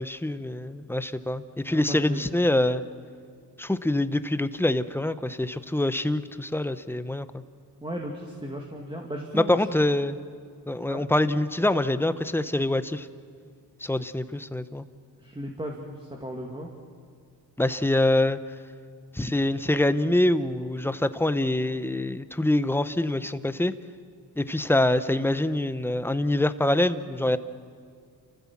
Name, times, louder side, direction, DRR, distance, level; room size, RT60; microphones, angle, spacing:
voice 1, 0.0-2.8 3.6-7.4 9.3-10.2 10.7-13.1 13.8-14.9 17.6-18.4 19.1-23.7 24.4-27.4, left 1 dB, 5° left, 12 dB, 0.8 m, -25 dB
voice 2, 1.7-2.4 7.8-9.7 10.9-11.1 15.2-16.7, equal, 10° right, 0 dB, 2.2 m, -36 dB
29.0 x 15.5 x 7.4 m, 2.2 s
cardioid pair, 95°, 41 cm